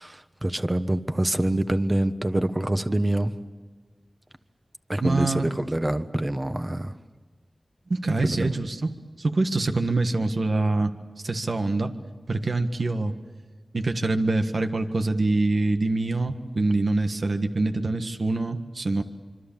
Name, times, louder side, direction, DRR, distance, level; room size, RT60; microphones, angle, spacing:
voice 1, 0.0-3.3 4.9-6.9 8.2-8.5, right 1 dB, 25° right, 9 dB, 1.3 m, -25 dB
voice 2, 5.0-5.6 7.9-8.9 9.2-10.9 11.2-11.9 12.3-13.1 13.7-19.0, right 2 dB, 70° right, 7 dB, 1.6 m, -25 dB
25.5 x 25.5 x 7.4 m, 1.4 s
wide cardioid pair, 55°, 0 cm